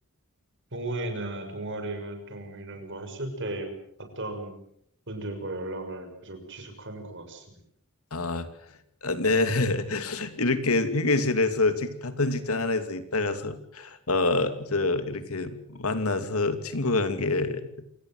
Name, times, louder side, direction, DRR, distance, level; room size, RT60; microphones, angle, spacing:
voice 1, 0.7-3.7 4.2-4.5 5.1-7.6, right 2 dB, 55° right, 6 dB, 6.1 m, -35 dB
voice 2, 8.1-8.5 9.0-17.8, left 3 dB, 75° left, 10 dB, 2.8 m, -26 dB
28.0 x 18.0 x 7.9 m, 0.73 s
head